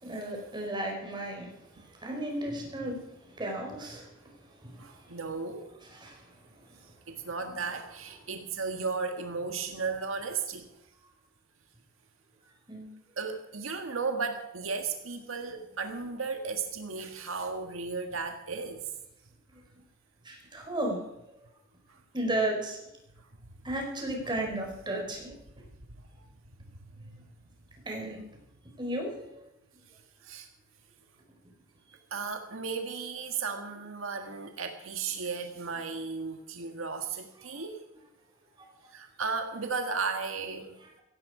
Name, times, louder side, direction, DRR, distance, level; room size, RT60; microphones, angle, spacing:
voice 1, 0.0-4.2 4.6-5.1 5.9-6.2 12.7-12.9 19.5-19.6 20.2-21.0 22.1-22.8 23.6-25.3 27.8-28.2 28.8-29.4 37.5-37.6 38.6-38.7, right 1 dB, 25° right, 1 dB, 4.7 m, -34 dB
voice 2, 4.8-5.7 6.7-10.7 13.2-18.9 20.6-20.7 21.9-22.0 23.1-23.5 26.0-26.1 26.6-27.2 29.9-30.5 32.1-37.8 38.9-40.8, right 4 dB, 80° right, 5 dB, 1.7 m, -35 dB
16.5 x 16.0 x 5.0 m, 0.88 s
head